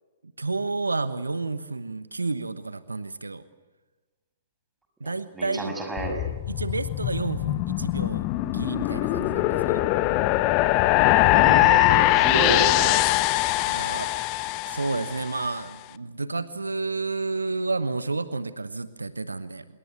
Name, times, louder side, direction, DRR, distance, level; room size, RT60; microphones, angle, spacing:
voice 1, 0.4-3.4 5.0-5.8 6.5-9.8 13.6-14.1 14.7-19.6, right 3 dB, 80° right, 13 dB, 1.1 m, -30 dB
voice 2, 5.0-6.2 11.3-13.0, right 1 dB, 10° right, 3 dB, 6.1 m, -29 dB
sound 1, 6.0-15.3, left 17 dB, 35° left, 0.9 m, -22 dB
27.0 x 22.0 x 7.9 m, 1.2 s
figure-of-eight pair, 115°, 0 cm